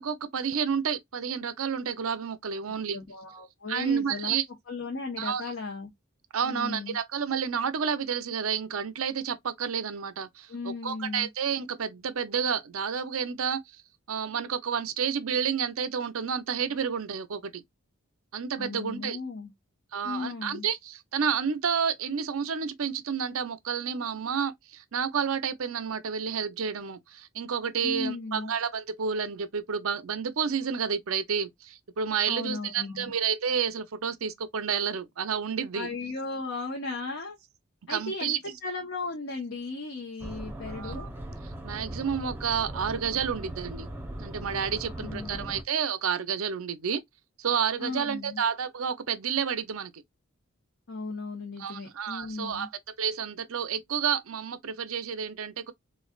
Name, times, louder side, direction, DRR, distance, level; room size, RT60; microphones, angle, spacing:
voice 1, 0.0-3.0 3.7-4.5 5.2-5.5 6.3-13.6 14.1-17.6 18.3-19.2 19.9-35.9 37.9-38.6 40.7-41.1 41.4-43.9 44.2-47.0 47.4-50.0 51.6-52.7 53.0-55.7, right 7 dB, 80° right, 0.6 m, -30 dB
voice 2, 2.6-4.4 4.7-5.9 6.4-7.0 10.5-11.3 18.6-19.5 20.0-20.7 27.8-28.5 32.3-33.0 35.7-37.4 37.9-41.1 44.8-45.5 47.8-48.4 50.9-52.7, left 3 dB, 60° left, 1.0 m, -36 dB
sound 1, 40.2-45.6, right 1 dB, 10° right, 0.7 m, -39 dB
3.7 x 3.2 x 2.3 m
head